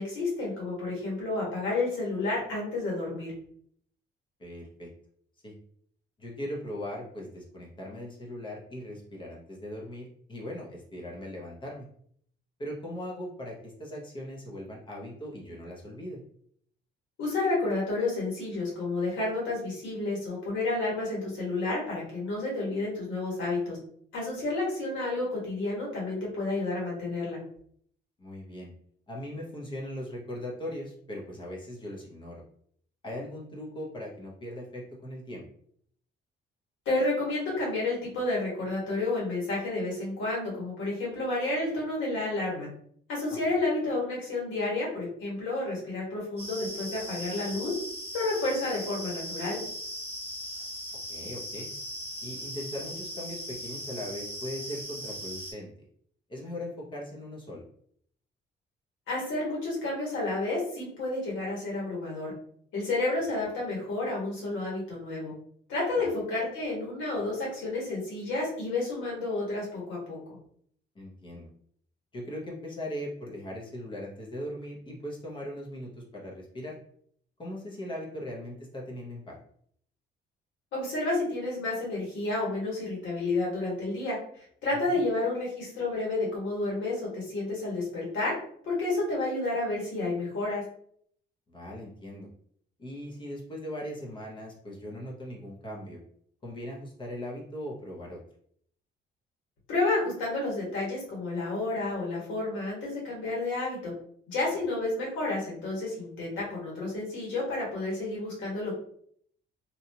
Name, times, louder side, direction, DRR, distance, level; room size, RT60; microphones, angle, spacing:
voice 1, 0.0-3.3 17.2-23.8 24.1-27.4 36.8-42.7 43.1-47.8 48.1-49.6 59.1-62.3 62.7-65.3 65.7-70.4 80.7-88.4 88.6-90.6 99.7-103.9 104.3-108.7, left 2 dB, 90° left, -4 dB, 1.5 m, -30 dB
voice 2, 4.4-4.9 5.4-5.5 6.2-11.8 12.6-16.2 28.2-28.7 29.1-32.4 33.0-35.4 43.3-43.6 51.1-51.7 52.2-55.7 56.3-57.6 66.0-66.1 70.9-71.5 72.1-76.8 77.4-79.4 84.7-85.0 91.5-92.3 92.8-96.0 96.4-98.2, left 1 dB, 25° left, -3 dB, 0.7 m, -39 dB
sound 1, 46.4-55.5, equal, 15° right, 1.0 m, -39 dB
2.8 x 2.3 x 2.7 m, 0.64 s
cardioid pair, 150°, 19 cm